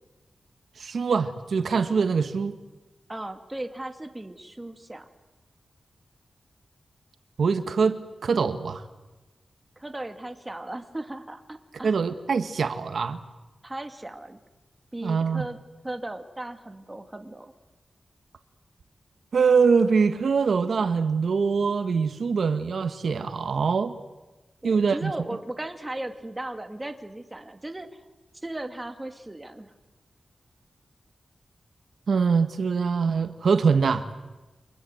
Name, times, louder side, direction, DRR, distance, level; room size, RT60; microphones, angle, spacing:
voice 1, 0.8-2.6 7.4-8.8 11.8-13.2 15.0-15.4 19.3-24.0 24.6-25.1 32.1-34.1, right 5 dB, 80° right, 1.5 m, -23 dB
voice 2, 3.1-5.1 9.8-12.0 13.6-14.4 14.9-15.6 15.8-17.5 24.6-28.0 28.4-29.7, right 1 dB, 20° right, 2.4 m, -37 dB
29.5 x 25.5 x 8.0 m
wide cardioid pair, 100°, 0 cm